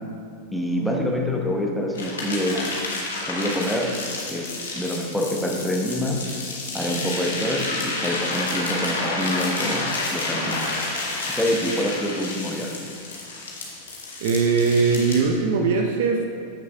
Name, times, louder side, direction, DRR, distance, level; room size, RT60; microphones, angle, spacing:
voice 1, 0.5-2.7 3.3-3.9 4.3-6.2 6.7-10.7 11.3-12.7, equal, ahead, -2 dB, 1.1 m, -26 dB
sound 1, 1.9-15.2, left 2 dB, 65° left, 1.5 m, -30 dB
voice 2, 14.2-16.3, right 4 dB, 55° right, 3 dB, 0.6 m, -20 dB
14.0 x 6.4 x 2.3 m, 2.3 s
figure-of-eight pair, 90°, 0 cm